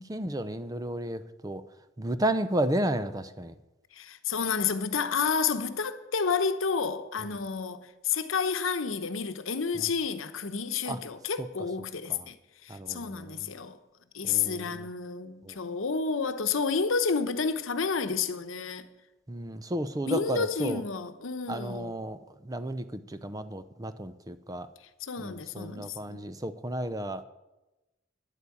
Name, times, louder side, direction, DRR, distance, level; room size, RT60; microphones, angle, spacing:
voice 1, 0.1-1.6 2.0-3.5 9.8-9.9 10.9-11.0 12.1-12.3 12.7-13.3 14.2-14.8 15.4-15.6 19.3-20.8 21.5-24.7 25.2-27.2, right 1 dB, 20° right, 0.6 m, -33 dB
voice 2, 3.9-12.4 12.6-13.8 14.1-18.9 20.0-22.0 24.8-26.2, left 5 dB, 85° left, 0.9 m, -30 dB
10.0 x 8.5 x 8.5 m
head